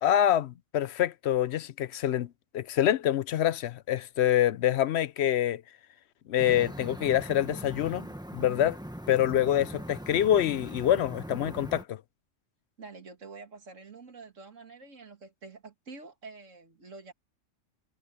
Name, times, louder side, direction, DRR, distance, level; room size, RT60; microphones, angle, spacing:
voice 1, 0.0-5.6 6.3-8.1 8.3-8.8 9.1-9.7 10.1-12.0, left 11 dB, 65° left, 0.8 m, -26 dB
sound 1, 6.4-11.8, equal, 5° right, 1.4 m, -41 dB
voice 2, 12.8-17.1, right 4 dB, 80° right, 2.5 m, -47 dB
omnidirectional pair, 1.3 m